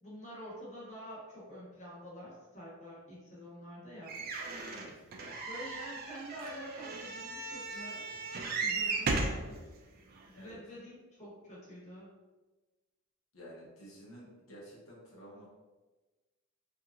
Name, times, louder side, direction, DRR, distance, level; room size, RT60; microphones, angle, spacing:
voice 1, 0.0-4.2 5.5-8.1 8.6-9.6 10.2-12.1, equal, 35° left, -7 dB, 0.9 m, -48 dB
sound 1, 4.1-9.4 10.2-10.3 10.5-10.6, right 3 dB, 45° right, 0.3 m, -36 dB
voice 2, 13.3-15.5, equal, 80° left, -5 dB, 0.7 m, -51 dB
2.8 x 2.4 x 2.4 m, 1.2 s
head